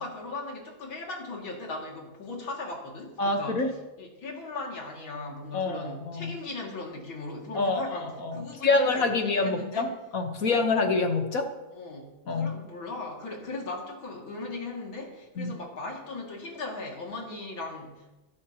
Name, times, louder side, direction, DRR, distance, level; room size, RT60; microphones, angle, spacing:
voice 1, 0.0-3.6 4.0-9.8 10.4-10.7 11.7-18.2, left 3 dB, 65° left, -1 dB, 3.2 m, -38 dB
voice 2, 3.2-3.7 5.5-6.4 7.5-7.8 8.2-11.5 12.3-12.5 15.4-15.5, left 3 dB, 50° left, 5 dB, 1.3 m, -26 dB
20.5 x 11.5 x 2.9 m, 1.1 s
omnidirectional pair, 2.3 m